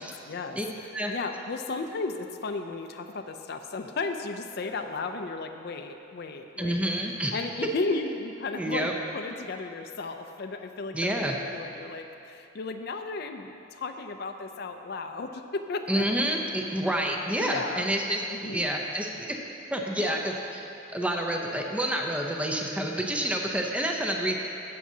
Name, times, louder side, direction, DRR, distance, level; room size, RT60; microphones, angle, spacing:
voice 1, 0.3-6.9 7.3-16.1 17.4-17.9 18.3-18.7 20.0-20.2, left 3 dB, 50° left, 6 dB, 0.4 m, -34 dB
voice 2, 6.6-7.4 8.6-8.9 10.9-11.4 15.9-19.4 19.7-20.6 20.9-24.4, right 1 dB, 5° right, 1 dB, 0.5 m, -28 dB
13.5 x 8.4 x 2.8 m, 2.8 s
head